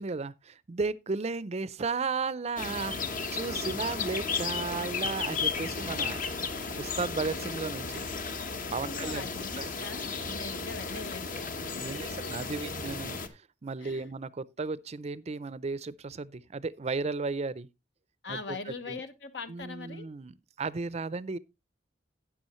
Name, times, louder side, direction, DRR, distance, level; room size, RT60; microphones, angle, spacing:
voice 1, 0.0-3.0 3.3-6.2 6.5-8.1 8.7-9.3 9.6-9.7 10.3-10.7 11.8-17.7 18.3-18.4 18.9-19.0 19.5-20.3 20.6-21.4, right 4 dB, 35° right, 0.5 m, -34 dB
sound 1, 2.6-13.3, left 4 dB, 50° left, 1.1 m, -34 dB
voice 2, 8.8-12.9 13.8-14.1 18.2-20.1, left 4 dB, 75° left, 1.3 m, -42 dB
12.0 x 9.3 x 3.0 m
head